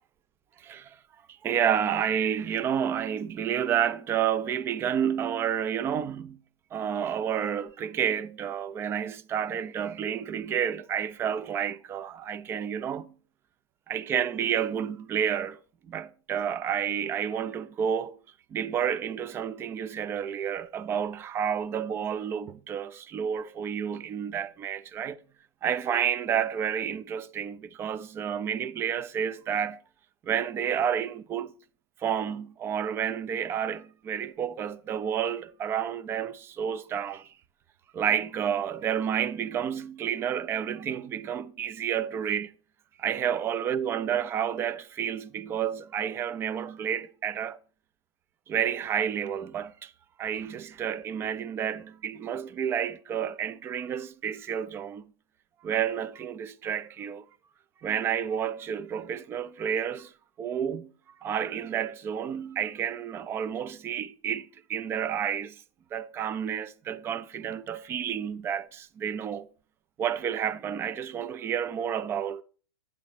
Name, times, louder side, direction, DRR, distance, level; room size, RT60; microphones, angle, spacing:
voice 1, 0.6-1.0 1.3-6.4 6.7-13.1 13.9-15.6 15.9-18.2 18.5-25.1 25.6-29.8 30.2-31.5 32.0-37.3 37.9-42.5 43.0-47.6 48.5-49.9 50.2-55.0 55.6-57.2 57.8-60.1 60.4-60.9 61.2-65.6 65.9-69.5 70.0-72.4, right 8 dB, 15° right, 0.3 m, -30 dB
8.8 x 4.1 x 5.1 m
hypercardioid pair, 135°, 15 cm